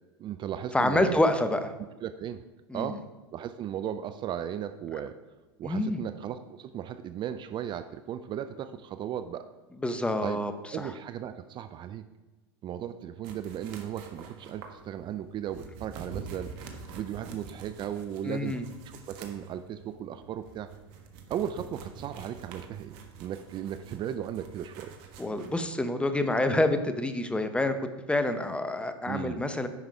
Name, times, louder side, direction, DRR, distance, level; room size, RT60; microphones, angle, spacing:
voice 1, 0.2-1.2 2.0-2.4 2.7-3.0 3.3-5.2 5.6-9.5 10.2-10.4 10.7-12.1 12.6-16.5 16.9-18.6 18.8-20.7 21.3-24.9 29.1-29.4, right 10 dB, 35° right, 11 dB, 0.5 m, -36 dB
voice 2, 0.7-1.7 2.7-3.0 5.6-6.0 9.8-10.9 18.2-18.6 25.2-27.7 28.1-29.7, left 1 dB, 10° left, 9 dB, 0.8 m, -27 dB
sound 1, 13.2-25.6, right 5 dB, 60° right, 1.4 m, -46 dB
9.7 x 5.8 x 4.8 m, 1.2 s
hypercardioid pair, 90°, 13 cm